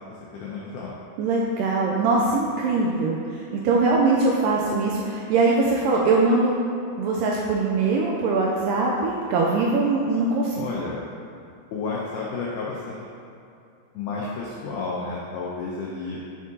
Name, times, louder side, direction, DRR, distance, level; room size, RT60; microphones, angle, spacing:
voice 1, 0.3-0.9 10.6-11.0 11.7-13.1 13.9-16.2, left 4 dB, 85° left, -5 dB, 1.8 m, -31 dB
voice 2, 1.2-6.6 7.0-10.6, right 3 dB, 85° right, -2 dB, 1.9 m, -22 dB
10.0 x 3.6 x 2.7 m, 2.6 s
omnidirectional pair, 4.3 m